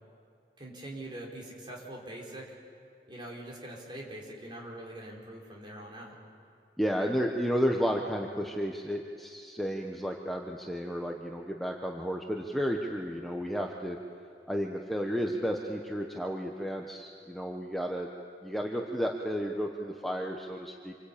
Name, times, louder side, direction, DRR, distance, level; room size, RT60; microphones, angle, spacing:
voice 1, 0.6-2.5 3.1-6.1, right 1 dB, 25° right, -2 dB, 4.7 m, -43 dB
voice 2, 6.8-14.0 14.5-18.1 18.4-20.9, equal, ahead, 0 dB, 1.1 m, -32 dB
27.5 x 24.5 x 8.6 m, 2.4 s
head